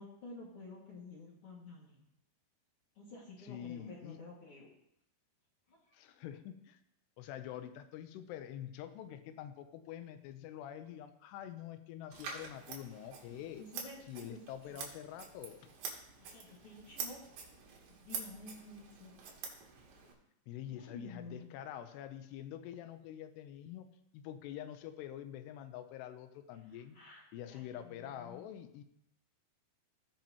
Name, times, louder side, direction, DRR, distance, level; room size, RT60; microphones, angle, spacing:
voice 1, 0.0-2.0 2.9-4.7 5.7-6.0 13.3-14.0 14.3-14.4 16.2-17.2 18.0-19.2 20.7-21.6 26.5-28.5, left 3 dB, 45° left, -4 dB, 2.2 m, -51 dB
voice 2, 3.4-4.2 5.9-6.8 7.2-13.6 14.1-15.7 20.5-23.9 24.1-27.0 27.3-28.8, left 11 dB, 90° left, 9 dB, 2.8 m, -46 dB
Scissors, 12.1-20.1, right 6 dB, 80° right, 3.7 m, -47 dB
17.5 x 5.9 x 2.9 m, 0.79 s
omnidirectional pair, 4.8 m